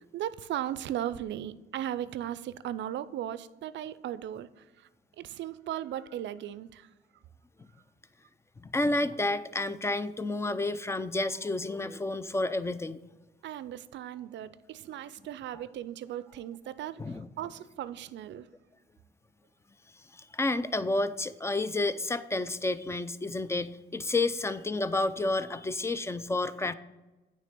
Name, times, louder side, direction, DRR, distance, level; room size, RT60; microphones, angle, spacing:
voice 1, 0.1-4.9 5.2-6.9 13.4-18.5, right 11 dB, 65° right, 15 dB, 0.4 m, -37 dB
voice 2, 8.6-13.0 17.0-17.3 20.1-26.7, left 2 dB, 15° left, 14 dB, 0.4 m, -30 dB
9.2 x 3.3 x 6.8 m, 1.1 s
cardioid pair, 90°, 20 cm